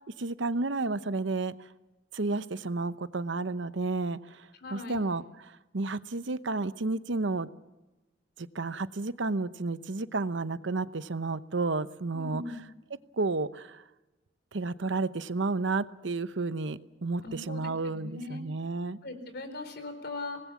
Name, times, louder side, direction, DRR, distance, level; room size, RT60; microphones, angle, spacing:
voice 1, 0.2-1.7 2.1-7.5 8.4-12.4 13.1-13.8 14.5-19.0, right 3 dB, 70° right, 14 dB, 0.8 m, -31 dB
voice 2, 4.6-5.0 12.1-12.6 17.2-18.4 19.0-20.4, left 2 dB, 55° left, 8 dB, 4.3 m, -40 dB
25.5 x 19.5 x 7.2 m, 1.1 s
head